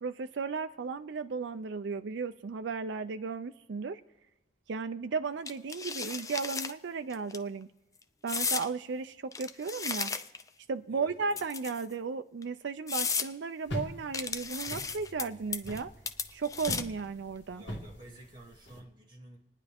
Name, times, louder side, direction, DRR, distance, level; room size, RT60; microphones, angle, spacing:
voice 1, 0.0-4.0 4.7-7.7 8.2-10.1 10.7-15.9 16.3-17.6, right 5 dB, 75° right, 9 dB, 0.5 m, -35 dB
sound 1, 5.5-6.7 7.1-7.4 8.3-8.7 9.3-10.5 11.3-11.9 12.4-12.5 12.9-13.3 14.1-15.2 15.5-15.8 16.1-17.0, left 5 dB, 20° left, 0.4 m, -34 dB
voice 2, 10.9-11.4 17.5-19.4, equal, 25° right, -3 dB, 2.4 m, -51 dB
sound 2, 13.7-18.8, equal, 85° left, 2.3 m, -42 dB
28.0 x 9.9 x 3.5 m, 1.0 s
head